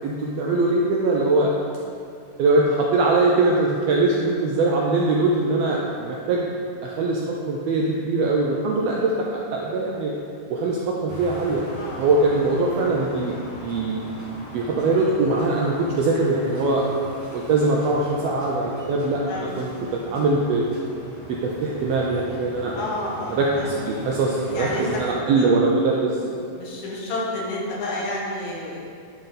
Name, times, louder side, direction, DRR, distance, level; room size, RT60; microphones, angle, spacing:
voice 1, 0.0-1.5 2.4-6.5 6.8-10.1 10.5-11.6 12.0-14.0 14.5-16.8 17.3-20.6 21.3-22.7 23.3-26.1, right 3 dB, 80° right, -3 dB, 1.5 m, -22 dB
sound 1, 11.1-25.1, left 1 dB, 20° right, 0.5 m, -40 dB
voice 2, 19.3-20.1 22.7-23.7 24.5-25.0 25.4-25.5 26.3-28.9, left 1 dB, 75° left, -4 dB, 2.5 m, -31 dB
10.0 x 3.9 x 4.1 m, 2.4 s
omnidirectional pair, 3.4 m